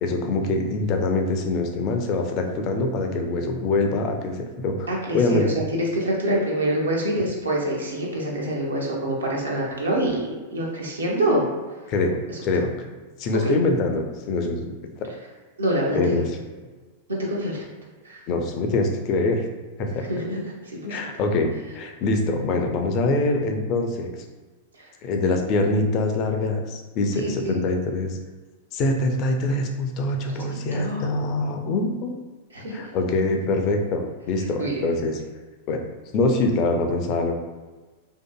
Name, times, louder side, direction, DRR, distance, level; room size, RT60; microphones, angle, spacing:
voice 1, 0.0-5.5 11.9-12.9 13.2-14.6 15.0-15.1 15.9-16.2 18.3-19.4 19.8-20.0 20.8-24.1 25.0-28.2 28.7-32.1 32.7-35.2 35.7-35.8 36.1-37.3, left 2 dB, 40° left, 3 dB, 0.4 m, -24 dB
voice 2, 4.9-11.5 12.3-12.4 13.4-13.5 15.6-16.2 17.1-17.6 18.0-18.2 20.1-20.5 24.8-24.9 27.2-27.6 30.7-31.1 32.5-32.8 34.6-34.7, right 1 dB, 80° right, -3 dB, 0.6 m, -25 dB
2.6 x 2.4 x 2.2 m, 1.3 s
figure-of-eight pair, 95°, 0 cm